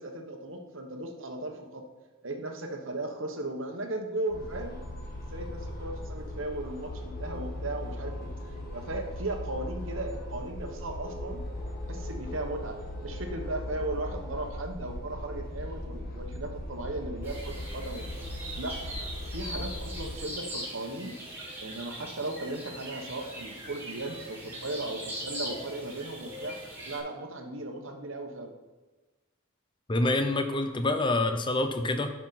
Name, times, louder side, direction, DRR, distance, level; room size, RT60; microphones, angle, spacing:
voice 1, 0.0-1.8 2.2-4.8 5.3-8.3 8.7-11.4 11.9-18.9 19.3-21.1 21.6-26.6 26.9-28.5, right 2 dB, 60° right, 4 dB, 1.2 m, -37 dB
sound 1, 4.3-20.2, left 1 dB, 45° left, 1.6 m, -38 dB
sound 2, 17.2-27.0, equal, 10° right, 2.7 m, -41 dB
voice 2, 29.9-32.1, left 2 dB, 20° left, 8 dB, 0.6 m, -26 dB
10.5 x 6.1 x 4.2 m, 1.2 s
head